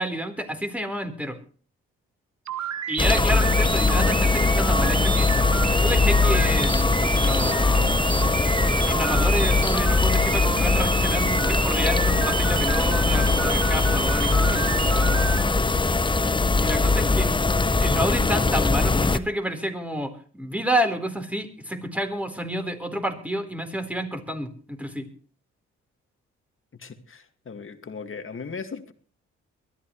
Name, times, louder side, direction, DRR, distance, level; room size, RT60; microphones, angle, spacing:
voice 1, 0.0-1.4 2.9-5.3 5.8-6.9 7.2-8.0 8.8-14.6 16.2-17.3 17.8-25.1, equal, 5° right, 5 dB, 4.3 m, -29 dB
sound 1, 2.5-15.4, right 9 dB, 65° right, 1.4 m, -30 dB
sound 2, 3.0-19.2, left 3 dB, 15° left, 0.9 m, -21 dB
sound 3, 8.6-19.7, right 4 dB, 85° right, 6.5 m, -52 dB
voice 2, 26.8-28.9, left 5 dB, 45° left, 8 dB, 2.2 m, -38 dB
22.5 x 14.0 x 3.2 m, 0.42 s
supercardioid pair, 50°, 29 cm